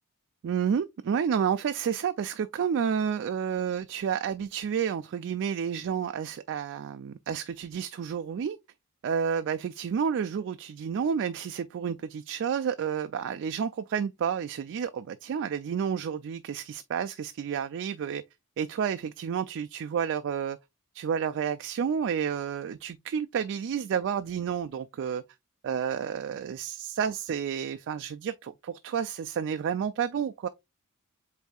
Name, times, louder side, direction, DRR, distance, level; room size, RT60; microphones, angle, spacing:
voice 1, 0.4-8.6 9.0-18.2 18.6-20.6 20.9-25.2 25.6-30.5, right 7 dB, 55° right, 0.3 m, -30 dB
8.0 x 2.7 x 2.3 m
head